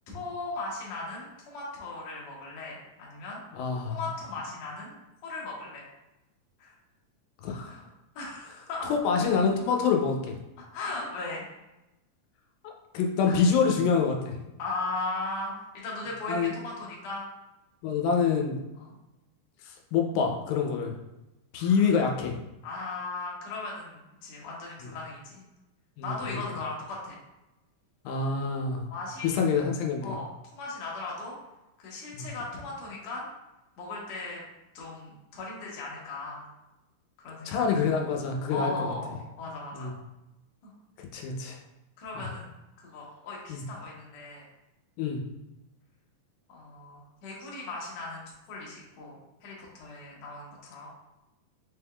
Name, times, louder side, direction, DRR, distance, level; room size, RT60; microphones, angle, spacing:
voice 1, 0.1-3.4 3.9-4.9 5.2-5.8 6.6-6.7 7.7-7.8 8.1-8.9 10.7-11.4 13.3-13.4 14.6-17.2 18.8-18.9 21.5-21.9 22.6-25.4 26.0-27.1 28.9-29.4 30.0-31.4 31.8-33.3 33.8-34.4 34.7-36.5 37.2-37.6 38.5-39.9 40.6-40.7 42.0-44.4 46.5-50.9, left 3 dB, 65° left, -4 dB, 1.8 m, -37 dB
voice 2, 3.5-4.0 7.4-7.8 8.9-10.4 12.6-14.4 16.3-16.5 17.8-18.6 19.6-21.0 21.5-22.4 24.8-24.9 26.0-26.4 28.1-28.9 29.2-30.2 32.1-32.3 37.5-38.9 39.7-39.9 41.0-41.6 42.2-42.3 43.5-43.6 45.0-45.2, left 5 dB, 85° left, 2 dB, 2.4 m, -26 dB
5.5 x 3.5 x 2.2 m, 0.96 s
omnidirectional pair, 4.0 m